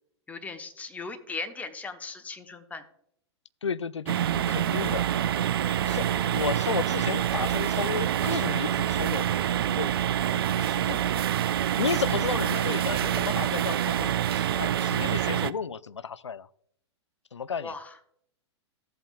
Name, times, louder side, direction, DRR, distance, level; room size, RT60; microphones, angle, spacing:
voice 1, 0.3-2.8 5.7-6.0 9.1-9.3 10.5-10.8 15.0-15.2 17.6-18.0, left 4 dB, 10° left, 8 dB, 0.9 m, -39 dB
voice 2, 3.6-5.0 5.7-9.3 9.7-11.2 11.8-16.5 17.3-17.7, left 6 dB, 75° left, 18 dB, 0.4 m, -33 dB
sound 1, 4.1-15.5, right 10 dB, 55° right, 0.4 m, -26 dB
14.0 x 7.9 x 2.4 m, 0.70 s
figure-of-eight pair, 100°, 15 cm